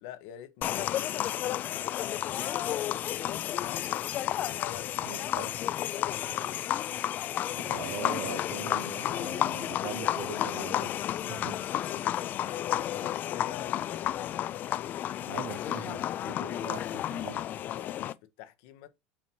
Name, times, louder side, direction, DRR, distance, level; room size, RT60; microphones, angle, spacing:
voice 1, 0.0-4.0 4.4-5.5 12.4-14.1 17.7-18.9, left 11 dB, 75° left, 1.0 m, -46 dB
sound 1, 0.6-18.1, left 12 dB, 40° left, 0.3 m, -32 dB
voice 2, 5.1-5.5 7.6-11.6 15.2-17.4, right 11 dB, 70° right, 0.8 m, -41 dB
7.4 x 2.9 x 4.4 m
supercardioid pair, 120°, 5 cm